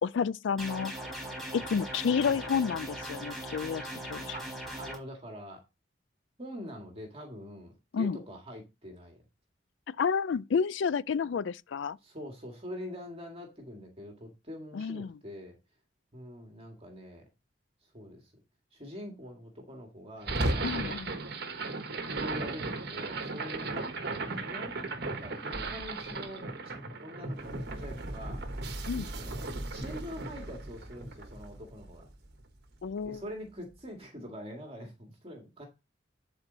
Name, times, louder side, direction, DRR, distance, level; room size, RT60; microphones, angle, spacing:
voice 1, 0.0-0.9 1.5-4.4 7.9-8.2 10.0-12.0 14.7-15.1 20.6-21.1 28.9-29.1 32.8-33.2, left 6 dB, 75° left, 0.4 m, -30 dB
sound 1, 0.6-5.0, right 1 dB, ahead, 4.4 m, -39 dB
voice 2, 4.3-5.6 6.4-9.2 12.0-15.6 16.1-17.3 17.9-18.3 18.7-21.0 22.1-23.9 24.2-24.8 25.2-26.5 27.0-28.4 29.2-32.1 33.0-35.7, equal, 30° right, 1.9 m, -44 dB
sound 2, 20.2-32.4, right 2 dB, 60° right, 1.3 m, -36 dB
11.5 x 4.5 x 3.9 m
head